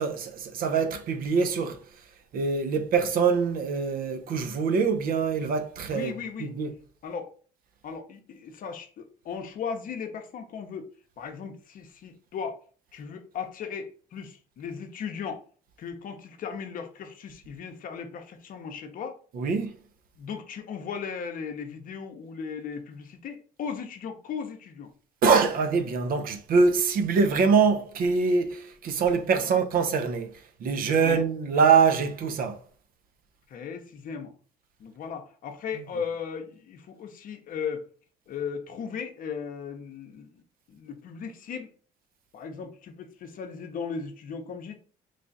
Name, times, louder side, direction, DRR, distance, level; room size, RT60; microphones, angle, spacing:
voice 1, 0.0-1.8 2.3-6.1 6.4-6.7 19.3-19.7 25.2-30.3 30.6-32.6 35.7-36.0, right 5 dB, 60° right, 0.7 m, -24 dB
voice 2, 5.9-6.5 7.0-7.3 7.8-12.6 12.9-15.4 15.8-19.2 20.2-24.9 29.4-29.6 31.0-31.2 33.5-34.3 34.8-37.9 38.3-40.4 40.7-41.7 42.3-44.7, left 6 dB, 55° left, 0.7 m, -37 dB
3.2 x 2.3 x 3.9 m
cardioid pair, 110°, 17 cm